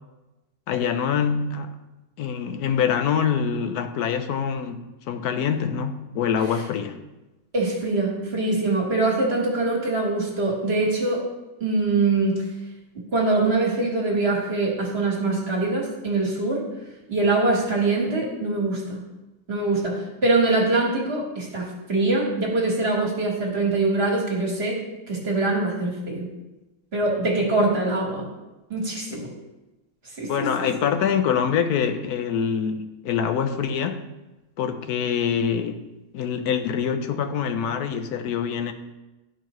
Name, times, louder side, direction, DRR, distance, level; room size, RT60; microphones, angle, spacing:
voice 1, 0.7-1.8 2.2-7.0 29.1-29.2 30.3-34.0 34.6-35.8 36.1-38.7, left 7 dB, 80° left, 1.1 m, -25 dB
voice 2, 7.5-11.3 11.6-12.5 13.1-16.7 17.1-19.0 19.5-26.3 26.9-28.3 28.7-29.3 30.2-30.5, right 2 dB, 45° right, 1.6 m, -23 dB
12.0 x 4.5 x 3.0 m
omnidirectional pair, 1.6 m